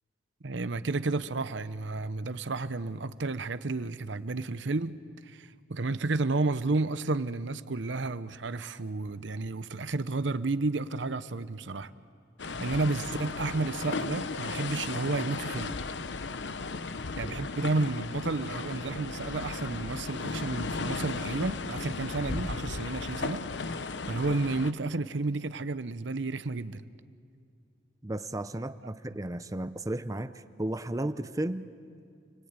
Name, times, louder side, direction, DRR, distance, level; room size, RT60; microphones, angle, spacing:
voice 1, 0.4-5.0 5.2-11.9 12.6-15.8 17.2-23.4 23.8-26.8 29.1-29.2, right 3 dB, 85° right, 0.8 m, -31 dB
sound 1, 12.4-24.7, left 3 dB, 75° left, 0.9 m, -35 dB
voice 2, 28.0-31.7, right 1 dB, 20° right, 0.7 m, -34 dB
28.5 x 21.0 x 9.0 m
head